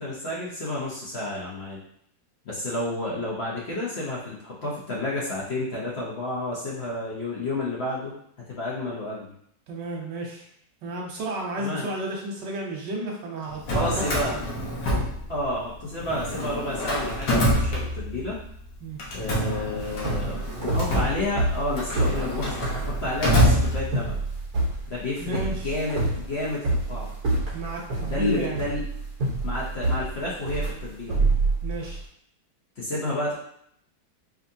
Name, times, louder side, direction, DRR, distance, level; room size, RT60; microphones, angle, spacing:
voice 1, 0.0-1.8 2.4-8.1 8.5-9.3 11.6-11.9 13.7-14.3 15.3-18.4 19.1-22.7 23.0-24.2 24.9-27.1 28.0-28.9 29.4-31.2 32.8-33.3, left 1 dB, 50° left, -6 dB, 0.8 m, -30 dB
voice 2, 9.7-10.4 10.8-14.4 18.8-19.0 25.2-25.7 27.5-28.6 31.6-32.0, right 1 dB, 85° right, -1 dB, 1.6 m, -32 dB
Drawer open or close, 13.5-15.7 16.0-18.4 19.0-24.3, equal, 85° left, 1.7 m, -26 dB
sound 1, 19.8-32.0, right 2 dB, 65° right, 1.4 m, -27 dB
4.9 x 2.7 x 2.7 m, 0.69 s
omnidirectional pair, 1.9 m